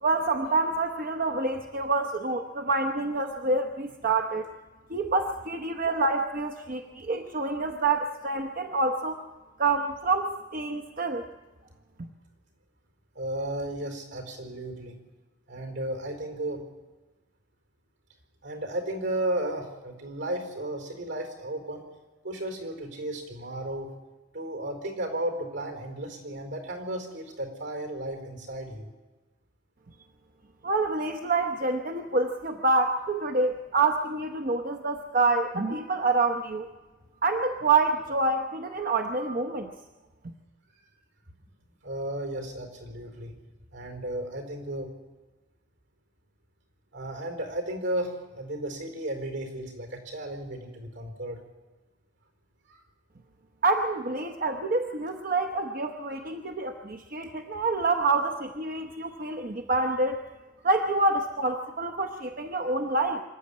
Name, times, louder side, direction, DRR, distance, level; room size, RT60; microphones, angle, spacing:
voice 1, 0.0-4.5 4.9-9.2 9.6-11.2 30.6-36.7 37.2-39.7 53.6-60.2 60.6-63.2, right 3 dB, 50° right, 4 dB, 0.9 m, -27 dB
voice 2, 13.1-14.9 15.5-16.6 18.4-21.8 22.2-23.9 24.3-28.9 41.8-43.4 43.7-44.9 46.9-51.4 52.7-52.8, right 1 dB, 80° right, 4 dB, 4.7 m, -34 dB
26.0 x 11.5 x 8.5 m, 1.2 s
head